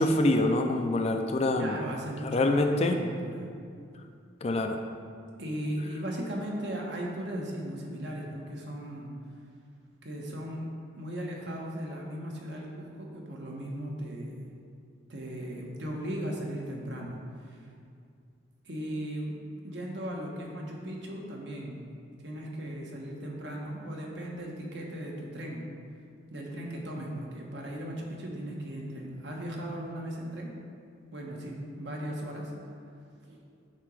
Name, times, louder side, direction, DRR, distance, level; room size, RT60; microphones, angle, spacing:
voice 1, 0.0-1.8 2.2-3.0 4.4-4.8, left 2 dB, 30° left, 5 dB, 0.4 m, -25 dB
voice 2, 1.6-2.4 2.7-3.5 5.4-9.1 10.0-10.7 11.0-14.4 15.1-17.7 18.6-19.4 19.6-21.8 22.2-25.6 26.3-30.5 31.1-32.5 33.3-33.4, right 1 dB, 60° right, -1 dB, 1.1 m, -37 dB
8.8 x 2.9 x 6.1 m, 2.3 s
head